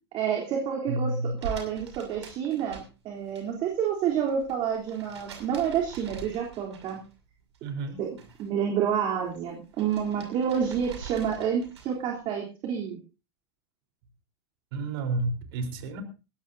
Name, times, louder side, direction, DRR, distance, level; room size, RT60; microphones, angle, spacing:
voice 1, 0.1-7.0 8.0-13.0, right 8 dB, 40° right, -1 dB, 3.5 m, -29 dB
voice 2, 0.9-1.3 7.6-8.0 14.7-16.0, right 2 dB, 60° right, 6 dB, 4.0 m, -30 dB
sound 1, 1.4-3.4 3.7-7.2 7.5-8.5 8.8-12.1, right 5 dB, 90° right, 6.4 m, -44 dB
20.5 x 16.0 x 2.7 m, 0.32 s
hypercardioid pair, 135°, 14 cm